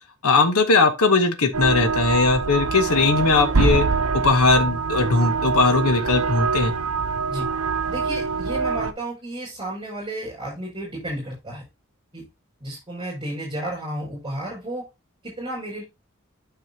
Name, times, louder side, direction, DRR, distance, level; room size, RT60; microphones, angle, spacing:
voice 1, 0.2-3.8 4.1-6.7, left 3 dB, 80° left, 1.1 m, -19 dB
sound 1, 1.5-8.9, right 4 dB, 80° right, 0.7 m, -24 dB
voice 2, 7.9-11.6 12.1-12.2 12.6-14.8 15.2-15.8, right 1 dB, 20° right, 5.8 m, -32 dB
9.4 x 6.4 x 2.8 m
head